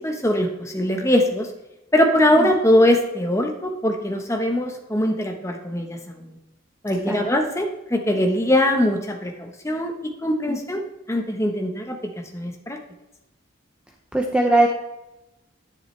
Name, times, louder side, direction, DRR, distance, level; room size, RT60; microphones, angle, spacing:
voice 1, 0.0-1.5 1.9-6.4 6.8-12.0 12.3-12.8, left 1 dB, 15° left, 3 dB, 1.1 m, -22 dB
voice 2, 14.1-14.7, right 2 dB, 5° right, 1 dB, 0.7 m, -20 dB
10.5 x 9.7 x 3.3 m, 0.95 s
head